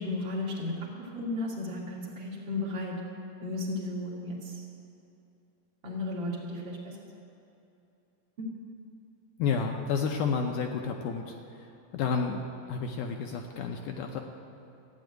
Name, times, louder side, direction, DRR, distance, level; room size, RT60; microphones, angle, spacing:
voice 1, 0.0-3.0 3.4-4.6 5.8-7.0 8.4-8.5, left 2 dB, 35° right, -3 dB, 2.7 m, -34 dB
voice 2, 9.4-11.3 11.6-14.2, left 5 dB, 75° left, 3 dB, 2.0 m, -31 dB
14.0 x 9.0 x 9.2 m, 2.8 s
omnidirectional pair, 4.2 m